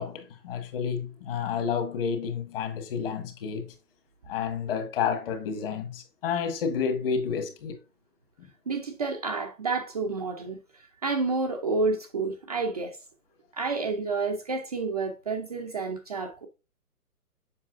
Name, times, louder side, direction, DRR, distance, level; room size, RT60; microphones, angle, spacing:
voice 1, 0.0-3.7 4.2-7.8 8.4-8.5, left 6 dB, 40° left, 1.6 m, -30 dB
voice 2, 8.7-10.6 11.0-13.0 13.5-16.5, right 3 dB, 25° right, 0.5 m, -29 dB
7.4 x 5.5 x 2.5 m
hypercardioid pair, 150°, 46 cm